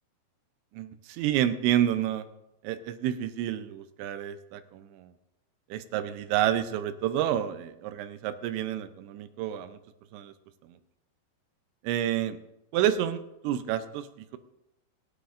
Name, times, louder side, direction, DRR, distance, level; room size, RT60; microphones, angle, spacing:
voice 1, 0.7-2.3 2.6-5.1 5.7-9.8 10.1-10.3 11.8-12.4 12.7-14.4, right 11 dB, 85° right, 10 dB, 3.0 m, -29 dB
25.5 x 9.3 x 2.5 m, 0.88 s
omnidirectional pair, 5.1 m